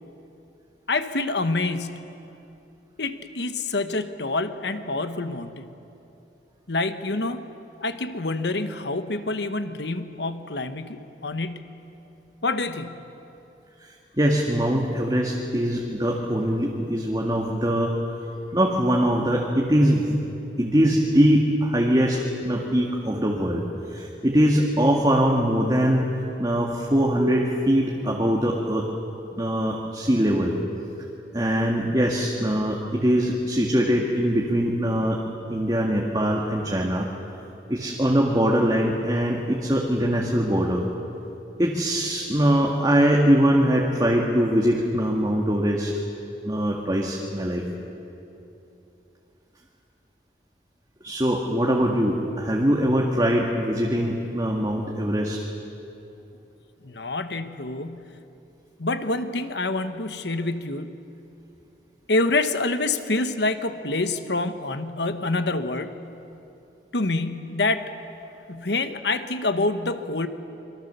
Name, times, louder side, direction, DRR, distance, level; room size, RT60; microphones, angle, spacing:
voice 1, 0.9-2.1 3.0-5.7 6.7-7.5 7.8-11.7 12.4-13.0 56.8-58.1 58.8-61.0 62.1-66.0 66.9-67.9 68.5-70.3, left 2 dB, 70° left, 9 dB, 1.2 m, -27 dB
voice 2, 13.8-18.2 18.5-20.2 20.6-26.1 26.4-28.9 29.3-30.6 31.3-35.2 35.5-37.1 37.7-40.9 41.6-45.9 46.4-47.6 51.0-55.4, equal, 20° right, -2 dB, 1.8 m, -22 dB
27.0 x 23.0 x 6.9 m, 2.9 s
head